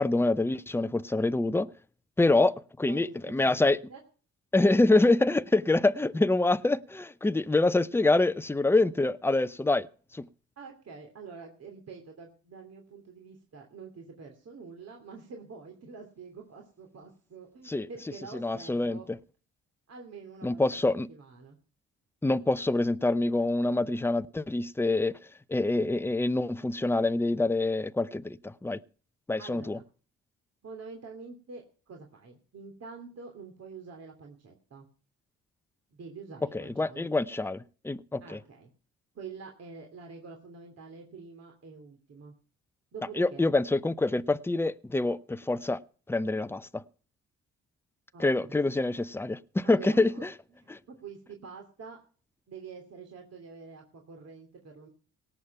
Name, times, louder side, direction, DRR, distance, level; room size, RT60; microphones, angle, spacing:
voice 1, 0.0-1.7 2.2-3.8 4.5-9.9 10.1-10.3 17.7-17.9 18.3-19.2 20.4-21.1 22.2-25.2 25.5-28.8 29.3-29.8 36.5-38.4 43.2-45.8 46.1-46.8 48.2-50.3 50.7-50.8, left 2 dB, 10° left, 0.7 m, -26 dB
voice 2, 2.9-4.0 10.6-19.1 19.9-20.8 21.1-21.6 29.4-29.8 30.6-34.9 35.9-37.1 38.2-38.7 39.1-42.3 42.9-43.5 48.1-48.6 49.6-50.2 50.5-50.7 51.0-52.0 52.5-54.9, right 5 dB, 55° right, 3.0 m, -46 dB
18.0 x 7.2 x 5.9 m
cardioid pair, 90°, 30 cm